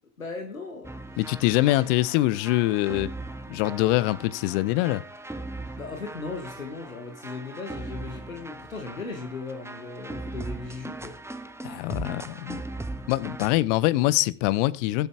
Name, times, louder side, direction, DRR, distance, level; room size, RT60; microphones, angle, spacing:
voice 1, 0.2-1.1 1.7-1.9 5.8-11.2, left 3 dB, 85° left, 1.3 m, -37 dB
sound 1, 0.8-13.5, right 2 dB, 5° right, 1.2 m, -39 dB
voice 2, 1.2-3.1 3.5-5.0 11.6-12.6 13.1-15.1, left 17 dB, 65° left, 0.7 m, -24 dB
21.0 x 8.0 x 3.4 m
figure-of-eight pair, 45°, 39 cm